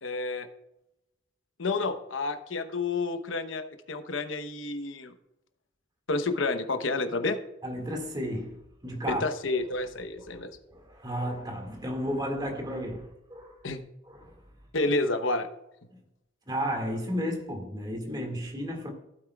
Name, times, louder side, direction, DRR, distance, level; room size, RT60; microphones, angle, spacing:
voice 1, 0.0-0.5 1.6-5.1 6.1-7.4 9.1-10.6 13.6-13.8 14.7-15.5, left 3 dB, 80° left, 0.9 m, -30 dB
voice 2, 7.6-9.2 9.5-9.6 10.2-10.4 10.7-13.6 14.1-14.3 15.9-16.0 16.5-18.9, equal, 20° right, 2.0 m, -33 dB
15.5 x 8.7 x 2.4 m
head